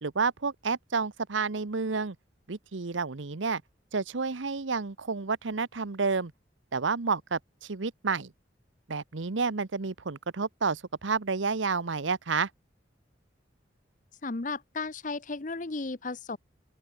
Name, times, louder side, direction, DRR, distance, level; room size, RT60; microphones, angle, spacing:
voice 1, 0.0-2.2 2.5-3.6 3.9-6.3 6.7-8.3 8.9-12.5, right 4 dB, 85° right, 0.9 m, -30 dB
voice 2, 14.2-16.4, left 3 dB, 40° left, 0.8 m, -34 dB
open air
head